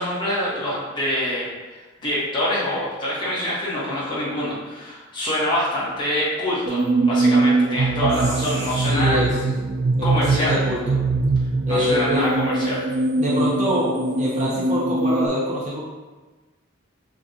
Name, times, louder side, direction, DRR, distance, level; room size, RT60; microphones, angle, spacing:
voice 1, 0.0-1.5 1.7-9.2 10.0-10.6 11.7-12.9, left 1 dB, 25° left, -8 dB, 1.3 m, -25 dB
sound 1, 6.7-15.3, right 3 dB, 60° right, 0.3 m, -22 dB
voice 2, 8.8-9.3 10.0-10.8 11.7-12.3 13.2-15.8, left 1 dB, 35° right, -5 dB, 0.8 m, -25 dB
6.4 x 2.5 x 2.8 m, 1.2 s
head